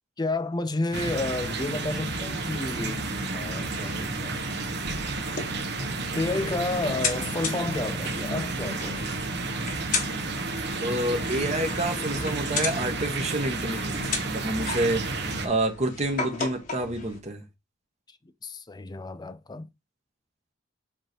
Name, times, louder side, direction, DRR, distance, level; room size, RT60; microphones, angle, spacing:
voice 1, 0.2-3.0 3.3-4.4 6.1-9.1 18.4-19.7, left 2 dB, 20° left, 0.5 m, -31 dB
sound 1, 0.9-15.5, right 3 dB, 60° right, 1.2 m, -31 dB
sound 2, 5.1-17.2, left 4 dB, 45° left, 1.3 m, -36 dB
voice 2, 10.8-17.4, right 1 dB, 35° right, 1.3 m, -28 dB
7.6 x 3.2 x 4.4 m
head